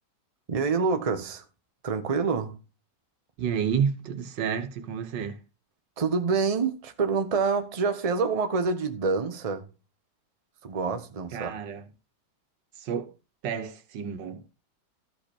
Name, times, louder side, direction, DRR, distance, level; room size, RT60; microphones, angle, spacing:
voice 1, 0.5-1.4 1.8-2.6 6.0-9.7 10.6-11.6, right 4 dB, 25° right, 0.8 m, -27 dB
voice 2, 3.4-5.4 11.3-11.9 12.8-13.1 13.4-14.5, right 7 dB, 90° right, 1.7 m, -30 dB
13.5 x 5.2 x 4.3 m
omnidirectional pair, 1.9 m